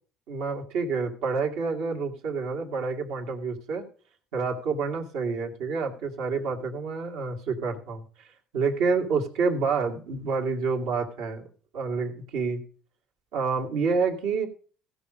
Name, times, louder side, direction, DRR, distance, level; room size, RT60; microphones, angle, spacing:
voice 1, 0.3-3.8 4.3-8.0 8.5-11.5 11.7-12.6 13.3-14.5, right 4 dB, 80° right, 1 dB, 2.3 m, -28 dB
16.0 x 5.5 x 5.0 m, 0.42 s
supercardioid pair, 80°, 0 cm